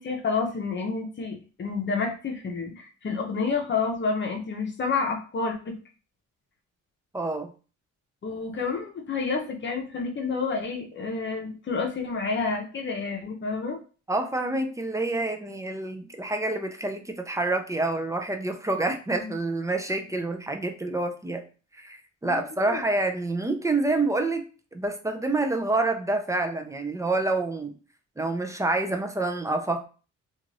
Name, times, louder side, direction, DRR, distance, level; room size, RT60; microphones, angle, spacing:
voice 1, 0.0-5.8 8.2-13.8 19.1-19.3 22.2-22.8, left 4 dB, 40° left, 3 dB, 0.8 m, -29 dB
voice 2, 7.1-7.5 14.1-21.4 21.7-24.4 24.7-27.8 28.2-29.9, right 2 dB, 10° right, 4 dB, 0.5 m, -27 dB
2.5 x 2.5 x 3.2 m, 0.36 s
cardioid pair, 90°, 30 cm